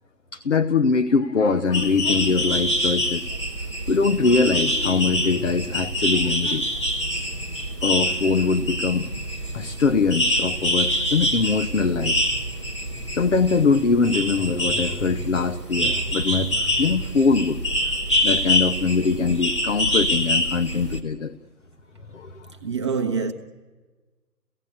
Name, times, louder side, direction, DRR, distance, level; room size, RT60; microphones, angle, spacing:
voice 1, 0.3-3.3 3.9-6.7 7.8-9.2 9.5-12.2 13.1-17.6 18.2-21.3 22.1-22.5, left 4 dB, 45° left, 0.9 m, -22 dB
sound 1, 1.7-21.0, left 1 dB, 20° left, 1.0 m, -25 dB
voice 2, 22.6-23.3, right 5 dB, 15° right, 1.0 m, -25 dB
29.5 x 16.5 x 8.5 m
figure-of-eight pair, 155°, 50 cm